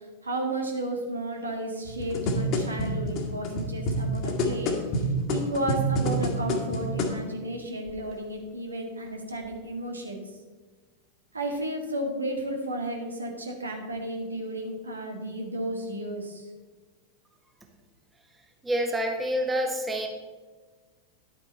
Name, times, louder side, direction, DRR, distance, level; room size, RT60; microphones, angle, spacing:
voice 1, 0.2-4.8 5.3-10.2 11.3-16.5, right 1 dB, 75° right, 2 dB, 1.8 m, -33 dB
sound 1, 1.8-7.2 7.9-8.0, equal, 40° left, 1.7 m, -28 dB
voice 2, 18.6-20.1, equal, 10° right, 3 dB, 1.5 m, -27 dB
11.0 x 8.7 x 4.2 m, 1.3 s
figure-of-eight pair, 90°, 0 cm